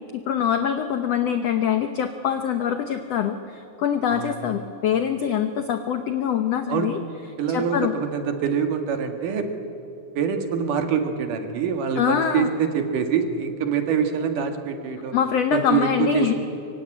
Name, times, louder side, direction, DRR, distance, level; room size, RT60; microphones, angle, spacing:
voice 1, 0.1-7.0 7.5-7.9 12.0-12.5 15.1-16.3, left 8 dB, 75° left, 8 dB, 1.5 m, -24 dB
voice 2, 7.4-9.5 10.2-15.2 15.5-16.3, right 7 dB, 65° right, 6 dB, 3.3 m, -25 dB
24.5 x 23.5 x 9.8 m, 2.8 s
omnidirectional pair, 4.2 m